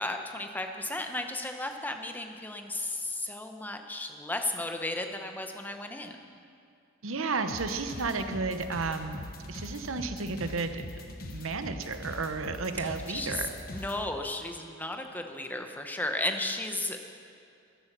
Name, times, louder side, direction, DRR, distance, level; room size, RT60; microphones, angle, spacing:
voice 1, 0.0-6.2 12.8-17.1, left 2 dB, 10° left, 5 dB, 0.9 m, -34 dB
voice 2, 7.0-10.8 11.2-13.5, right 4 dB, 85° right, 8 dB, 0.9 m, -33 dB
sound 1, 7.5-14.0, left 1 dB, 45° left, 1.1 m, -42 dB
13.0 x 10.0 x 6.8 m, 2.4 s
head